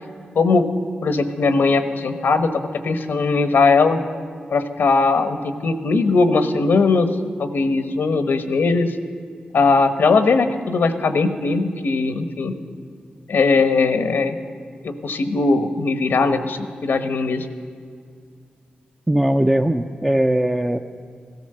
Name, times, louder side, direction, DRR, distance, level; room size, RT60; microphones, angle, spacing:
voice 1, 0.3-0.7 1.0-4.0 4.5-7.1 7.4-9.0 9.5-12.6 13.3-14.4 14.8-17.5, left 4 dB, 80° left, 9 dB, 1.0 m, -19 dB
voice 2, 19.1-20.8, right 1 dB, 10° right, 3 dB, 0.6 m, -19 dB
16.0 x 13.5 x 6.7 m, 2.2 s
cardioid pair, 65°, 3 cm